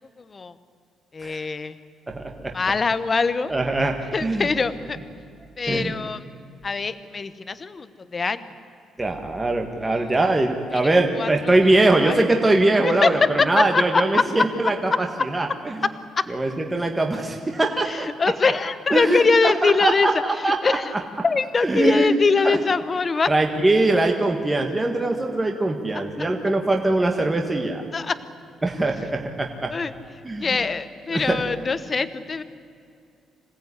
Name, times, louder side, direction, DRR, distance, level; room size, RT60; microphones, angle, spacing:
voice 1, 1.1-1.8 2.5-3.5 4.1-5.0 5.6-6.2 6.6-7.9 8.1-8.4 10.9-11.5 12.0-12.2 12.8-13.3 13.6-14.4 16.2-16.3 17.8-20.1 20.4-20.9 21.2-23.3 25.9-26.0 27.9-28.2 29.7-29.9 30.4-32.4, left 4 dB, 20° left, 13 dB, 1.0 m, -23 dB
voice 2, 2.1-2.5 3.5-4.5 5.7-5.9 9.0-15.8 16.3-18.1 18.9-20.8 21.6-22.2 22.4-22.6 23.3-27.8 28.6-29.7 30.2-30.5 31.1-31.4, right 2 dB, 10° right, 3 dB, 1.5 m, -22 dB
26.0 x 18.0 x 9.8 m, 2.4 s
cardioid pair, 175°, 0 cm